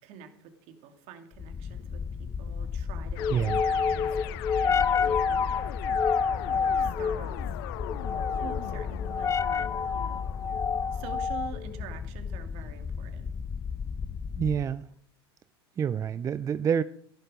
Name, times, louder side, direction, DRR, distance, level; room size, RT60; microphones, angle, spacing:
voice 1, 0.0-4.2 4.6-5.5 6.4-7.6 8.3-10.2 10.9-13.3, right 7 dB, 55° right, 6 dB, 2.5 m, -46 dB
sound 1, 1.4-14.7, left 6 dB, 20° left, 0.7 m, -29 dB
sound 2, 3.2-11.3, left 15 dB, 60° left, 0.8 m, -41 dB
voice 2, 3.3-3.6 14.4-14.9 15.8-16.8, right 8 dB, 25° right, 15 dB, 0.4 m, -27 dB
16.5 x 11.5 x 5.0 m, 0.65 s
hypercardioid pair, 90°, 14 cm